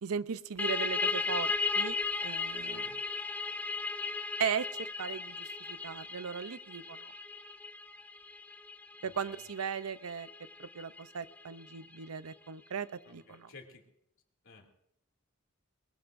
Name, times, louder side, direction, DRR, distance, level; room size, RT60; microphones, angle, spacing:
voice 1, 0.0-2.0 2.2-2.8 4.4-7.1 9.0-10.3 10.6-13.5, right 7 dB, 90° right, 14 dB, 0.6 m, -37 dB
sound 1, 0.6-11.9, left 3 dB, 5° left, 0.6 m, -36 dB
voice 2, 2.6-3.0 9.0-9.5 13.0-13.9 14.4-14.7, left 4 dB, 65° left, 2 dB, 2.7 m, -54 dB
21.5 x 21.0 x 2.6 m, 0.78 s
head